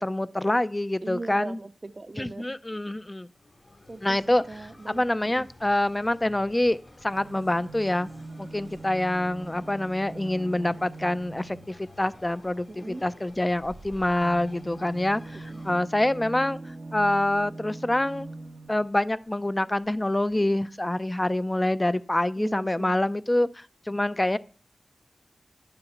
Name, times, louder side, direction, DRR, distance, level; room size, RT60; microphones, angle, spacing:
voice 1, 0.0-1.6 2.2-3.3 4.0-4.4 4.9-8.1 8.4-16.6 16.9-18.3 18.7-24.4, left 1 dB, 25° left, 14 dB, 0.5 m, -26 dB
voice 2, 1.0-2.6 3.9-5.1 5.4-5.5 12.7-13.0 15.5-15.7 20.4-20.6 22.4-23.0, right 2 dB, 45° right, 10 dB, 0.5 m, -40 dB
sound 1, 3.3-15.7, left 2 dB, 50° left, 2.7 m, -53 dB
sound 2, 7.0-11.9 13.5-19.0 19.9-20.0 20.2-20.3, right 2 dB, 80° right, 0.9 m, -42 dB
11.0 x 6.9 x 5.7 m, 0.43 s
cardioid pair, 50°, 0 cm